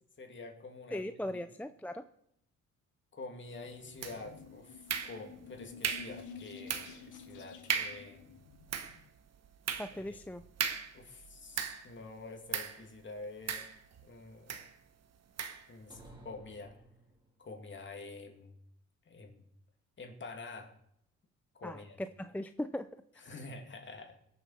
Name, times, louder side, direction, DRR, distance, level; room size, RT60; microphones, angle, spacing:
voice 1, 0.2-1.4 3.1-8.3 9.9-10.2 10.9-13.6 14.0-14.5 15.7-16.7 17.4-18.5 19.1-19.4 20.0-20.7 21.5-22.0 23.2-24.2, left 3 dB, 40° left, 3 dB, 2.6 m, -47 dB
voice 2, 0.9-2.0 9.8-10.4 21.6-22.9, left 1 dB, 5° left, 10 dB, 0.4 m, -39 dB
sound 1, 3.7-9.1, left 6 dB, 80° left, 1.4 m, -51 dB
sound 2, 4.0-4.4 4.9-5.4 5.8-6.2 6.7-7.0 7.3-7.4 7.7-8.1 8.5-12.0 12.5-12.8 13.5-14.1 14.5-14.7 15.4-15.7, right 7 dB, 55° right, 1.3 m, -37 dB
sound 3, 15.9-17.5, right 1 dB, 15° right, 3.4 m, -55 dB
21.5 x 7.4 x 4.2 m, 0.75 s
cardioid pair, 90°, 30 cm